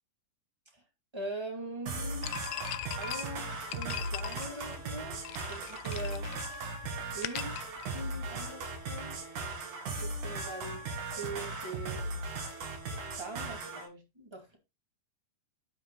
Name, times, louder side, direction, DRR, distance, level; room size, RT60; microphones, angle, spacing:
voice 1, 1.1-2.3 2.9-5.2 5.5-6.3 7.1-7.5 7.9-9.2 10.0-10.8 11.2-12.0 13.2-14.6, right 2 dB, 10° right, 1.5 m, -42 dB
sound 1, 1.9-13.9, right 2 dB, 55° right, 3.4 m, -38 dB
sound 2, 2.2-8.5, left 15 dB, 80° left, 2.0 m, -41 dB
12.0 x 5.2 x 3.9 m
omnidirectional pair, 4.6 m